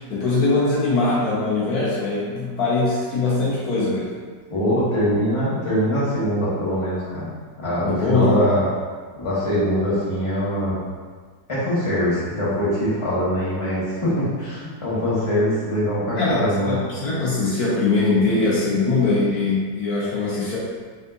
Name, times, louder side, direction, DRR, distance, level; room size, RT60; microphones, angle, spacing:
voice 1, 0.0-4.2 7.8-8.4 16.2-20.6, left 3 dB, 65° left, -7 dB, 1.4 m, -21 dB
voice 2, 4.5-7.3 7.6-8.7 9.2-10.8 11.5-16.8, equal, 20° left, -9 dB, 1.2 m, -23 dB
5.4 x 3.6 x 2.5 m, 1.5 s
omnidirectional pair, 1.8 m